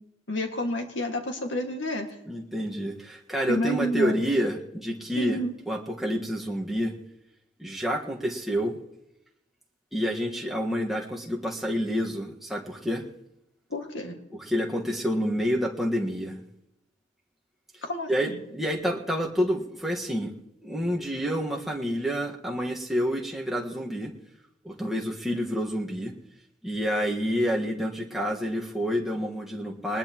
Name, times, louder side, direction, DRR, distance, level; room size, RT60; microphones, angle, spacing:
voice 1, 0.3-2.1 3.5-4.1 5.2-5.5 13.7-14.2 17.8-18.4, left 1 dB, 90° left, 3 dB, 2.1 m, -29 dB
voice 2, 2.3-5.4 5.7-6.9 7.6-8.8 9.9-13.0 14.3-16.4 18.1-20.3 20.6-24.1 24.6-26.1 26.6-30.0, equal, ahead, -2 dB, 1.6 m, -28 dB
20.5 x 20.5 x 3.0 m, 0.86 s
head